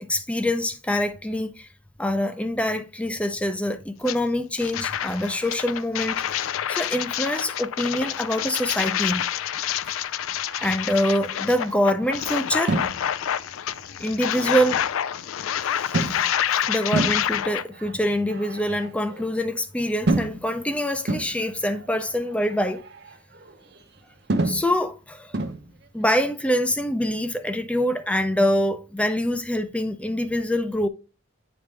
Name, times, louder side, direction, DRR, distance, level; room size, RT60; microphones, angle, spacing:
voice 1, 0.0-1.7 2.0-9.2 9.8-10.0 10.6-12.8 14.0-14.8 15.8-16.2 16.7-22.8 24.4-25.4 25.9-30.9, equal, 5° left, 0.4 m, -25 dB
sound 1, 4.0-4.2 4.6-17.6, left 10 dB, 85° left, 0.3 m, -28 dB
sound 2, 10.1-15.3 15.9-16.5 16.9-19.4 20.1-20.6 21.1-24.0 24.3-24.7 25.3-25.7, right 2 dB, 55° right, 0.7 m, -31 dB
9.1 x 3.5 x 3.2 m
head